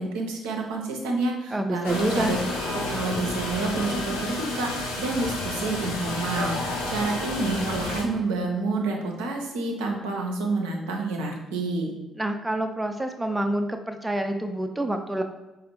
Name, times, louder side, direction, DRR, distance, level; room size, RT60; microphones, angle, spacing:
voice 1, 0.0-2.4 2.7-11.9, right 3 dB, 70° right, 1 dB, 0.5 m, -28 dB
voice 2, 1.5-2.4 12.2-15.2, right 1 dB, 10° right, 6 dB, 0.3 m, -27 dB
sound 1, 1.8-8.0, left 2 dB, 80° left, 0.4 m, -30 dB
4.1 x 2.0 x 2.8 m, 1.1 s
figure-of-eight pair, 40°, 0 cm